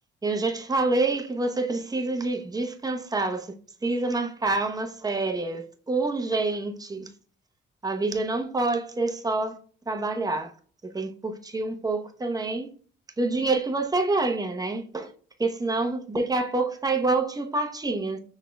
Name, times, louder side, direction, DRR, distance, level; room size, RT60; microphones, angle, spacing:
voice 1, 0.2-3.5 3.8-7.1 7.8-9.6 9.9-10.5 10.8-12.7 13.2-15.1 15.4-18.2, right 3 dB, 20° right, 0.9 m, -27 dB
6.1 x 3.6 x 2.3 m
cardioid pair, 90°, 20 cm